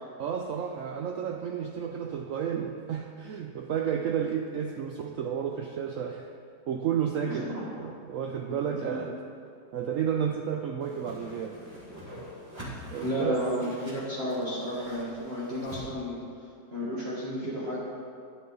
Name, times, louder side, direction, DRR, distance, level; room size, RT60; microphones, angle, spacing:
voice 1, 0.2-6.3 6.7-7.5 7.8-9.2 9.7-11.6 12.2-12.3 12.9-13.5, right 8 dB, 80° right, 3 dB, 0.7 m, -31 dB
voice 2, 7.3-7.8 8.2-8.3 8.7-9.0 13.0-16.2 16.7-17.9, equal, 35° right, -8 dB, 1.7 m, -32 dB
Whoosh swoosh swish, 10.8-15.8, equal, 15° right, 1.7 m, -45 dB
11.0 x 8.1 x 3.9 m, 2.4 s
omnidirectional pair, 1.9 m